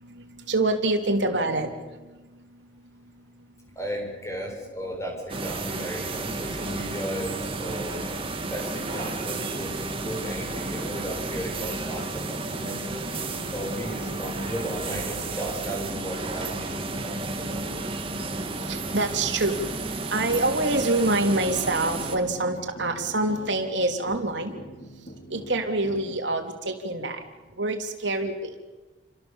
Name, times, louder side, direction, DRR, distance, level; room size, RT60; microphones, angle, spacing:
voice 1, 0.5-1.7 18.7-19.6 20.1-24.6 25.3-27.2 27.6-28.5, right 2 dB, 80° right, 4 dB, 3.4 m, -25 dB
voice 2, 3.8-8.0 8.4-13.1 13.5-18.0, right 1 dB, 15° left, 1 dB, 7.5 m, -35 dB
sound 1, 5.3-22.2, right 3 dB, 30° right, 2.4 m, -32 dB
sound 2, 6.3-26.2, equal, 45° left, 2.9 m, -45 dB
29.0 x 26.0 x 7.3 m, 1.2 s
head